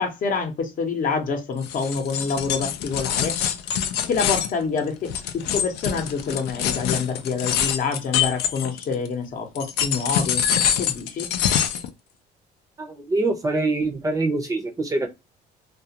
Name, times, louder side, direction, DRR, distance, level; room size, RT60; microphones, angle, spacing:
voice 1, 0.0-3.4 4.1-10.5 10.8-11.3, left 5 dB, 50° left, 0.8 m, -27 dB
sound 1, 1.6-9.1 9.6-11.9, left 9 dB, 80° left, 0.4 m, -25 dB
voice 2, 12.8-15.1, right 2 dB, 20° right, 0.6 m, -24 dB
2.3 x 2.3 x 2.8 m
cardioid pair, 110°, 17 cm